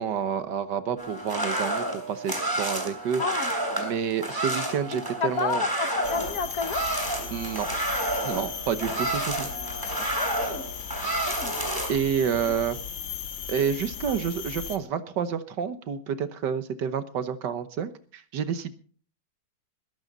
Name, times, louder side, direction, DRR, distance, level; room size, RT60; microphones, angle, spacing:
voice 1, 0.0-5.6 7.3-7.7 8.2-9.5 10.4-10.5 11.9-12.8 13.5-18.7, right 7 dB, 70° right, 12 dB, 1.6 m, -29 dB
sound 1, 1.0-11.9, right 1 dB, 10° right, 3.2 m, -30 dB
voice 2, 3.2-3.5 5.2-6.9 8.8-9.0 10.2-10.7 11.3-11.5, left 5 dB, 55° left, 12 dB, 1.3 m, -30 dB
sound 2, 6.0-14.8, left 7 dB, 75° left, 2.1 m, -37 dB
20.5 x 12.0 x 4.0 m, 0.43 s
omnidirectional pair, 2.1 m